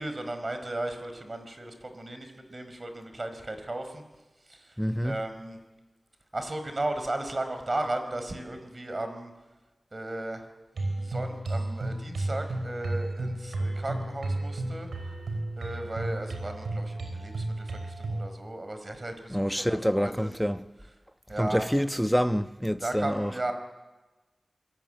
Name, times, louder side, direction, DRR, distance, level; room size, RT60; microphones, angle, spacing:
voice 1, 0.0-4.0 4.5-4.8 5.0-5.6 6.3-9.3 9.9-10.4 11.0-14.9 15.6-20.4 21.3-21.7 22.8-23.5, right 2 dB, 40° right, 5.2 m, -35 dB
voice 2, 4.8-5.2 19.3-20.6 21.4-23.3, equal, ahead, 1.2 m, -27 dB
sound 1, 10.8-18.3, right 2 dB, 90° right, 6.4 m, -33 dB
27.0 x 22.0 x 9.3 m
wide cardioid pair, 55°, 0 cm